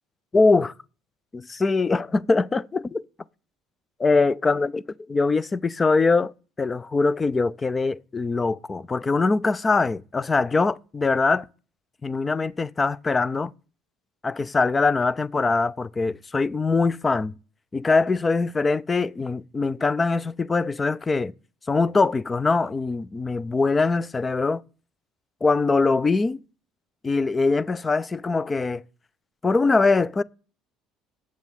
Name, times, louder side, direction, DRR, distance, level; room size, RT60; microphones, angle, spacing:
voice 1, 0.3-0.7 1.3-3.0 4.0-4.8 5.1-6.3 6.6-11.5 12.0-13.5 14.2-17.3 17.7-21.3 21.7-24.6 25.4-26.4 27.0-28.8 29.4-30.2, left 3 dB, 20° left, 0.4 m, -22 dB
7.5 x 7.2 x 8.2 m
cardioid pair, 110°, 0 cm